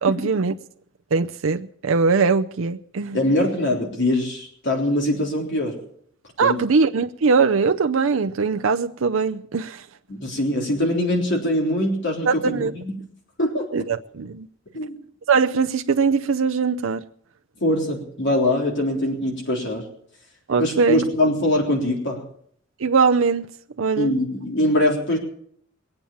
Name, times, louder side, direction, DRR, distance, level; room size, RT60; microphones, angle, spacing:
voice 1, 0.0-0.5 1.1-3.2 6.4-9.8 12.2-12.7 13.7-14.5 15.3-17.0 20.5-21.0 22.8-23.5 23.8-24.1, right 5 dB, 80° right, 0.6 m, -21 dB
voice 2, 3.1-5.8 6.4-6.6 10.1-13.0 13.4-13.7 14.7-15.0 17.6-19.8 20.6-22.2 24.0-25.2, left 1 dB, 60° left, 3.7 m, -22 dB
21.0 x 9.0 x 7.1 m
head